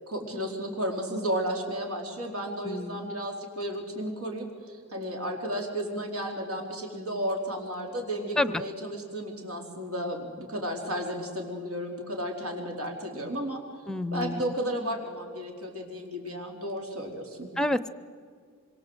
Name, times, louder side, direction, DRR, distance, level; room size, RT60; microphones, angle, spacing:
voice 1, 0.0-13.6 14.1-17.5, equal, 85° right, 1 dB, 4.3 m, -33 dB
voice 2, 2.6-3.1 8.4-8.6 13.9-14.4 17.6-17.9, left 1 dB, 5° left, 15 dB, 0.6 m, -28 dB
26.0 x 23.5 x 8.0 m, 2.1 s
head